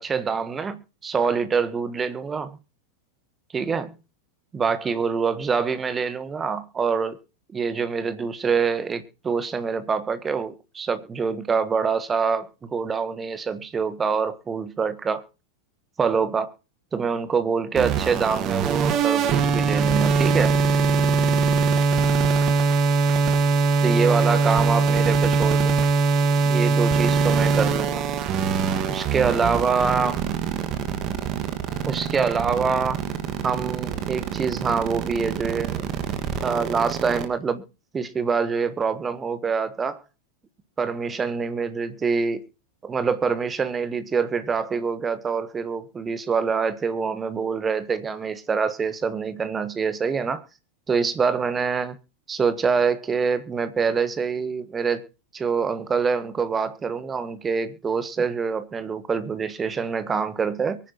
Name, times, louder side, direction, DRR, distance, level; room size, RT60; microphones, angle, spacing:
voice 1, 0.0-2.6 3.5-3.9 4.5-7.2 7.5-15.2 16.0-16.5 16.9-20.5 23.8-25.7 26.4-28.0 28.9-30.2 31.8-33.0 33.4-35.8 36.4-37.6 37.9-40.0 40.8-42.4 42.8-50.4 50.9-52.0 52.3-55.0 55.3-60.8, right 5 dB, 20° right, 1.4 m, -25 dB
sound 1, 17.8-37.2, right 5 dB, 35° right, 1.8 m, -22 dB
23.0 x 10.5 x 3.0 m
figure-of-eight pair, 90°, 0 cm